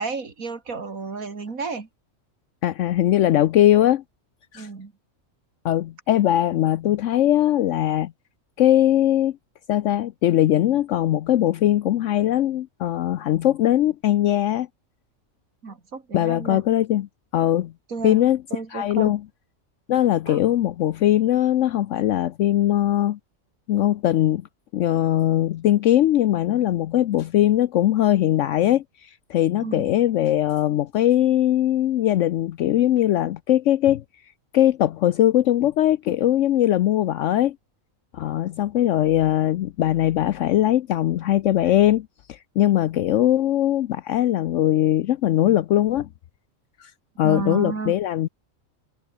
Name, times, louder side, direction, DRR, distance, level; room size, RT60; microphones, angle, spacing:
voice 1, 0.0-1.9 4.5-4.9 15.6-16.6 17.9-18.2 18.5-19.1 20.3-20.4 29.6-29.9 47.2-47.9, right 4 dB, 85° right, 3.0 m, -32 dB
voice 2, 2.6-4.0 4.5-4.7 5.6-8.1 8.6-9.4 9.7-14.7 16.1-17.1 17.3-17.7 18.0-18.4 18.7-19.2 19.9-23.2 23.7-24.4 24.7-28.8 29.3-34.0 34.5-37.6 38.1-46.1 46.8-46.9 47.2-48.3, left 12 dB, 70° left, 0.9 m, -20 dB
omnidirectional pair, 1.4 m